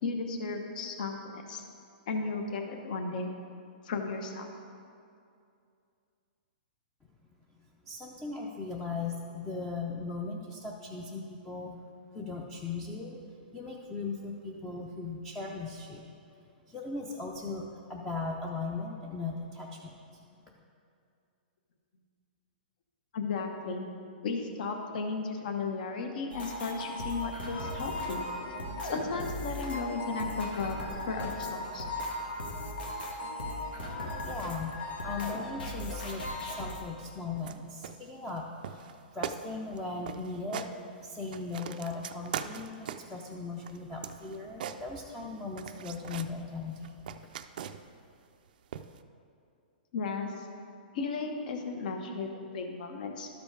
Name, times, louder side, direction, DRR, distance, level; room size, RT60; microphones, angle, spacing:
voice 1, 0.0-1.6 2.1-3.3 3.8-4.5 23.1-23.9 24.2-28.2 28.8-30.8 31.1-31.8 49.9-50.5 50.9-53.3, left 4 dB, 55° left, 4 dB, 1.0 m, -35 dB
voice 2, 7.9-11.8 12.1-13.2 13.5-16.1 16.7-20.2 34.2-46.9 47.2-47.3, left 3 dB, 10° left, -2 dB, 0.5 m, -38 dB
sound 1, 26.3-36.8, left 1 dB, 85° left, 1.8 m, -37 dB
sound 2, 37.4-37.6 37.8-38.4 38.6-39.0 39.2-39.4 39.7-39.8 40.1-40.7 41.1-43.2 43.6-45.3 45.6-46.3 46.7-48.0 48.7-49.0, right 9 dB, 60° right, 0.4 m, -40 dB
12.0 x 5.1 x 4.8 m, 2.4 s
hypercardioid pair, 155°, 5 cm